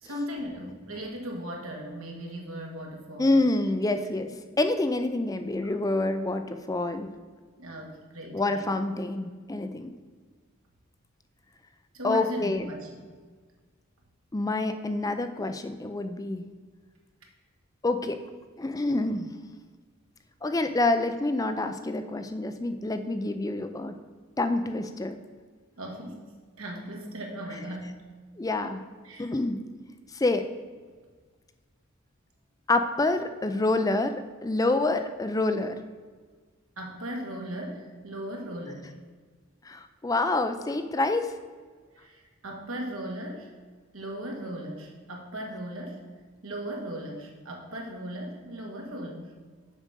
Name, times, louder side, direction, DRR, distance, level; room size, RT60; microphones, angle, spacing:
voice 1, 0.0-3.4 5.6-5.7 7.6-8.7 11.9-13.0 25.8-26.3 26.6-28.0 29.0-29.3 36.8-39.0 41.9-43.5 43.9-46.1 46.4-49.4, equal, 80° right, 1 dB, 1.8 m, -37 dB
voice 2, 3.2-4.3 4.6-7.1 8.3-9.9 12.0-12.6 14.3-16.4 17.8-18.2 18.6-19.3 20.4-23.9 24.4-25.2 28.4-28.8 29.2-29.6 30.1-30.4 32.7-35.8 39.7-41.3, left 2 dB, 15° left, 8 dB, 0.4 m, -27 dB
7.3 x 5.0 x 6.7 m, 1.5 s
head